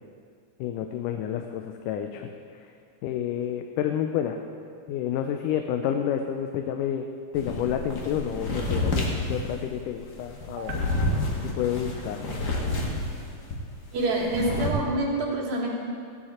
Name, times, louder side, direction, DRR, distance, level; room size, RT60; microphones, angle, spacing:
voice 1, 0.6-2.3 2.5-2.7 3.0-4.4 4.9-7.1 7.3-10.7 11.6-12.2, left 9 dB, 85° left, 5 dB, 2.1 m, -29 dB
sound 1, 7.3-13.6 13.9-14.7, left 2 dB, 50° left, 1.3 m, -29 dB
voice 2, 13.9-15.7, right 2 dB, 65° right, -3 dB, 3.1 m, -27 dB
15.0 x 9.8 x 4.3 m, 2.3 s
omnidirectional pair, 3.7 m